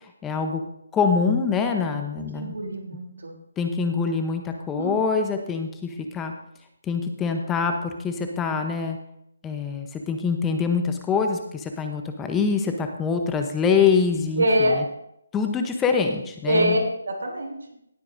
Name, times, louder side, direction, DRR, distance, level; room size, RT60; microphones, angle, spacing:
voice 1, 0.2-0.6 0.9-2.5 3.6-6.3 6.8-9.0 9.4-14.8 15.3-16.8, left 5 dB, 10° left, 5 dB, 0.7 m, -24 dB
voice 2, 2.2-3.3 4.7-5.0 14.4-14.8 16.5-16.8 17.1-17.6, equal, 75° right, 1 dB, 3.2 m, -24 dB
18.0 x 8.4 x 2.6 m, 0.77 s
hypercardioid pair, 160°, 0 cm